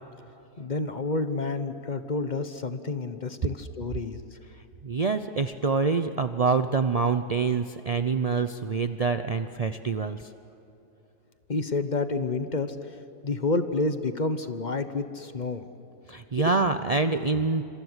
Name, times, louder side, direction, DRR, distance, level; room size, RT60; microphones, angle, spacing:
voice 1, 0.6-4.2 11.5-12.8 13.2-15.6 16.4-16.5, left 3 dB, 30° left, 10 dB, 1.0 m, -29 dB
voice 2, 4.5-10.3 16.1-17.6, right 4 dB, 75° right, 9 dB, 0.3 m, -26 dB
28.0 x 26.0 x 8.1 m, 3.0 s
omnidirectional pair, 1.7 m